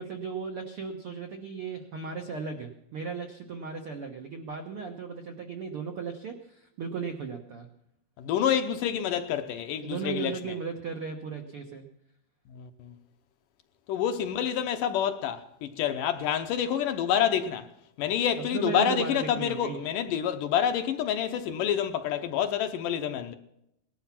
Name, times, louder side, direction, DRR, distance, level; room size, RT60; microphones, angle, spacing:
voice 1, 0.0-7.7 9.8-11.8 18.4-19.8, right 5 dB, 70° right, 1.3 m, -36 dB
voice 2, 8.2-10.4 12.5-12.9 13.9-17.7 18.0-23.3, left 9 dB, 75° left, 2.2 m, -28 dB
19.0 x 12.0 x 5.9 m
omnidirectional pair, 4.5 m